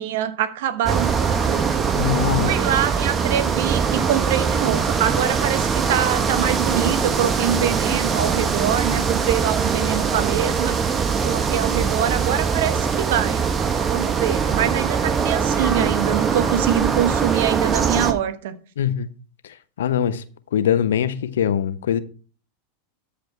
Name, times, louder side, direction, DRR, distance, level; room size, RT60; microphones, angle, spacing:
voice 1, 0.0-1.9 2.4-10.8 11.2-13.4 13.9-18.6, right 10 dB, 65° right, 1.1 m, -24 dB
sound 1, 0.8-18.1, right 6 dB, 30° right, 1.4 m, -22 dB
voice 2, 1.9-2.5 18.8-19.1 19.8-20.2 20.5-22.0, left 9 dB, 75° left, 0.8 m, -22 dB
13.5 x 5.2 x 4.4 m
hypercardioid pair, 95°, 0 cm